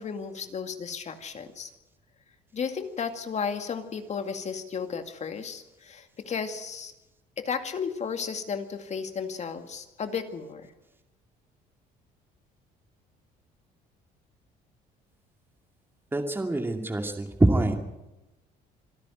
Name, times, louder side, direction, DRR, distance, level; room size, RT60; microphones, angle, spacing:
voice 1, 0.0-1.7 2.5-6.9 7.4-10.7, left 6 dB, 40° left, 7 dB, 2.2 m, -34 dB
voice 2, 16.1-17.8, right 2 dB, 15° right, 3 dB, 2.5 m, -24 dB
26.0 x 11.0 x 9.3 m, 0.97 s
cardioid pair, 110°, 17 cm